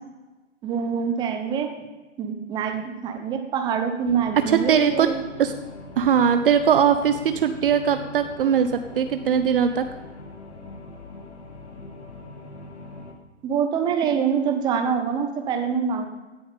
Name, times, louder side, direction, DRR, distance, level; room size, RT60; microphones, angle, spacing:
voice 1, 0.6-1.7 2.2-5.2 13.4-16.1, right 7 dB, 10° right, 6 dB, 0.8 m, -25 dB
sound 1, 4.1-13.1, left 2 dB, 60° left, 2.1 m, -41 dB
voice 2, 4.5-5.1 5.4-5.5 6.0-8.7 9.0-9.8, right 8 dB, 50° right, 9 dB, 0.7 m, -20 dB
17.0 x 7.0 x 5.3 m, 1.2 s
hypercardioid pair, 140°, 37 cm